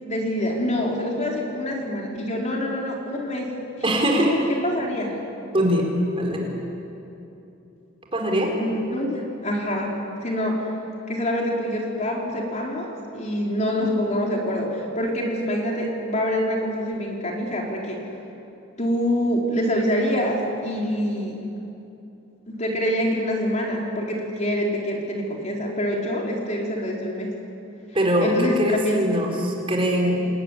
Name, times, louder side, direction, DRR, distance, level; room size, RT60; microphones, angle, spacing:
voice 1, 0.0-3.5 3.8-4.0 4.6-5.2 8.5-9.9 10.2-10.7 11.1-18.0 18.8-21.4 22.5-27.3 28.2-29.0, equal, 35° left, -1 dB, 4.1 m, -26 dB
voice 2, 3.8-4.4 5.5-5.9 6.2-6.5 8.1-8.5 27.9-30.3, equal, 25° right, 0 dB, 4.4 m, -22 dB
28.0 x 20.0 x 9.9 m, 2.9 s
head